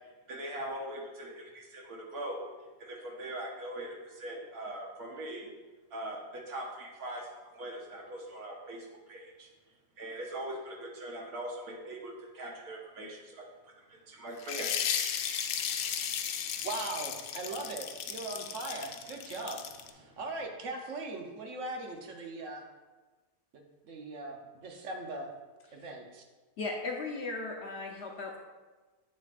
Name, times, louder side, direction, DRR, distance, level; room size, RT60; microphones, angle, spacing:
voice 1, 0.3-2.4 2.8-5.5 5.9-9.5 10.0-13.4 13.9-14.7 15.7-15.8 16.3-16.7 20.0-20.2, right 1 dB, 80° right, -1 dB, 1.7 m, -41 dB
sound 1, 14.4-19.9, left 8 dB, 85° left, 1.1 m, -35 dB
voice 2, 16.6-19.6 19.9-22.6 23.9-25.3 25.7-26.2, right 2 dB, 60° right, 2 dB, 1.2 m, -39 dB
voice 3, 26.6-28.4, left 3 dB, 55° left, 1 dB, 0.9 m, -36 dB
8.0 x 6.9 x 2.5 m, 1.2 s
omnidirectional pair, 1.6 m